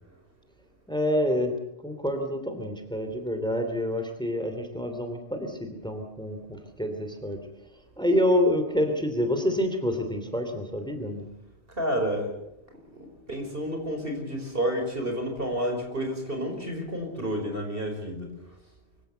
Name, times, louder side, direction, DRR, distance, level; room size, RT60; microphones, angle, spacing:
voice 1, 0.9-1.5 1.8-7.4 8.0-11.2, left 1 dB, 5° left, 6 dB, 2.8 m, -27 dB
voice 2, 11.7-12.3 12.9-18.3, equal, 55° right, 4 dB, 5.1 m, -30 dB
24.5 x 16.0 x 8.1 m, 0.86 s
omnidirectional pair, 1.1 m